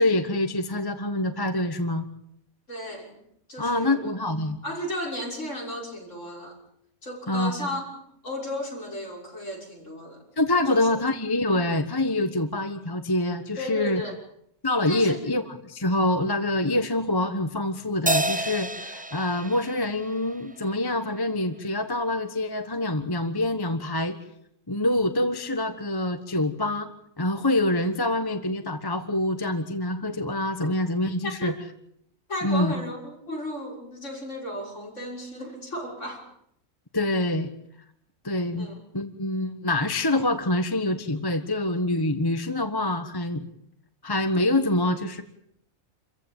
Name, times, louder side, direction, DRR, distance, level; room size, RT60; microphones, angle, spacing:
voice 1, 0.0-2.0 3.6-4.6 7.3-7.7 10.4-14.0 14.6-24.2 24.7-31.5 32.4-32.7 36.9-37.5 38.2-38.7 38.9-43.5 44.0-45.2, left 1 dB, 15° left, 8 dB, 1.2 m, -26 dB
voice 2, 2.7-3.2 3.5-4.1 4.6-6.6 7.0-7.8 8.2-10.2 10.7-10.9 13.6-14.2 14.9-15.2 30.6-30.7 31.2-31.5 32.3-36.2 38.6-38.8, equal, 55° left, -1 dB, 6.9 m, -34 dB
Crash cymbal, 18.1-20.7, right 1 dB, 10° right, 0.6 m, -29 dB
28.0 x 15.5 x 9.0 m, 0.72 s
omnidirectional pair, 1.5 m